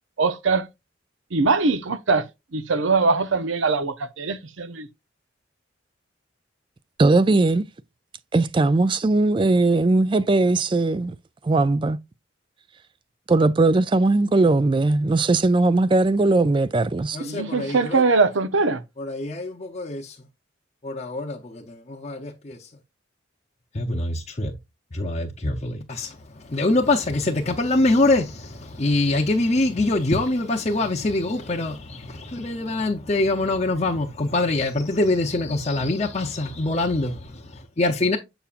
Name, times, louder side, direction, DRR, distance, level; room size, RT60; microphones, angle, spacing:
voice 1, 0.2-0.7 1.3-2.2 2.5-4.9 17.2-18.8, right 4 dB, 85° right, 0.7 m, -22 dB
voice 2, 7.0-7.6 8.3-11.2 11.4-12.0 13.3-17.2, right 2 dB, 25° right, 0.3 m, -19 dB
voice 3, 17.1-18.0 19.0-20.1 20.8-22.6 23.7-24.5 24.9-26.2 26.5-28.2 28.7-37.4 37.8-38.2, left 2 dB, 35° left, 0.7 m, -24 dB
7.0 x 5.7 x 2.4 m
head